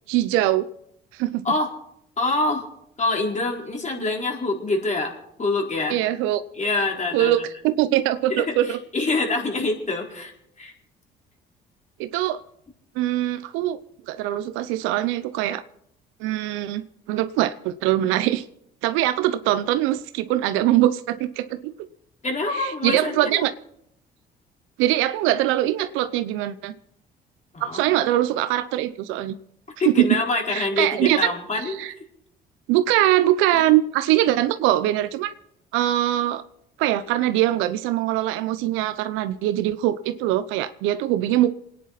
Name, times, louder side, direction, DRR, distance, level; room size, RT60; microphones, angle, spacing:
voice 1, 0.1-0.6 1.2-1.4 5.9-6.4 7.1-8.8 12.0-12.4 13.0-13.8 14.1-15.6 16.2-16.8 17.1-18.4 18.8-21.7 22.6-23.5 24.8-26.7 27.7-29.4 29.8-29.9 30.5-31.3 31.8-31.9 32.7-35.3 35.7-36.4 36.8-41.5, right 14 dB, 80° right, 12 dB, 0.8 m, -22 dB
voice 2, 2.2-2.7 3.0-6.0 6.5-7.3 8.3-10.3 10.6-10.7 22.2-23.3 27.5-28.0 29.8-32.0 33.5-33.6, left 2 dB, 35° left, 0 dB, 4.4 m, -25 dB
28.0 x 10.0 x 4.2 m, 0.76 s
supercardioid pair, 65°, 20 cm